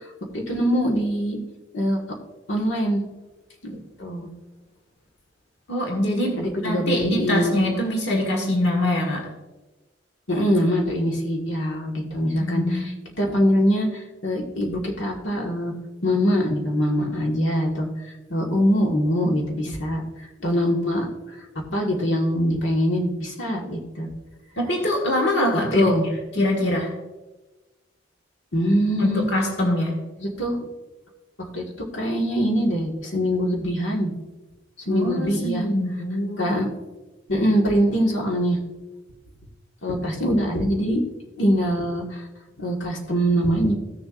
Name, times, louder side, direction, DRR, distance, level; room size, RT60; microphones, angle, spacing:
voice 1, 0.3-1.4 1.7-2.0 2.5-3.0 3.6-4.3 6.4-7.6 10.3-12.9 13.2-15.7 16.0-17.9 18.3-20.0 20.4-21.1 21.7-24.1 25.7-26.0 28.5-29.3 30.2-30.6 31.4-31.6 31.9-34.1 34.9-35.6 36.4-36.7 37.3-38.6 39.8-41.0 41.4-42.0 42.6-43.7, equal, 80° left, 0 dB, 1.8 m, -23 dB
voice 2, 5.7-9.3 12.4-12.9 24.6-25.9 26.3-26.9 29.0-29.9 34.9-36.7, left 1 dB, 65° left, 1 dB, 1.5 m, -24 dB
16.5 x 6.9 x 2.5 m, 1.1 s
head